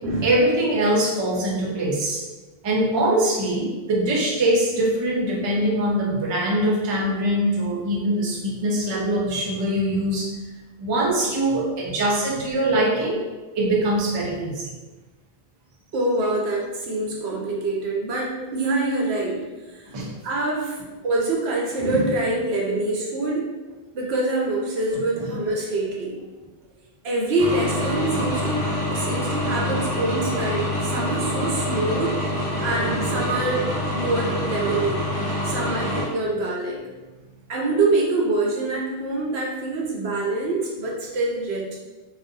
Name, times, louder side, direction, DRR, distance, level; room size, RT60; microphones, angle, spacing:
voice 1, 0.2-2.2 2.6-10.4 10.8-13.2 13.6-14.7 19.9-20.1 25.2-25.3, right 1 dB, 40° right, -3 dB, 0.4 m, -22 dB
voice 2, 15.9-19.8 20.2-20.8 21.0-23.5 23.9-26.2 27.0-32.2 32.6-35.0 35.4-36.8 37.5-41.8, right 2 dB, 90° right, -2 dB, 0.9 m, -25 dB
sound 1, 27.4-36.0, left 1 dB, 20° right, 0.8 m, -26 dB
2.4 x 2.0 x 2.6 m, 1.2 s
omnidirectional pair, 1.0 m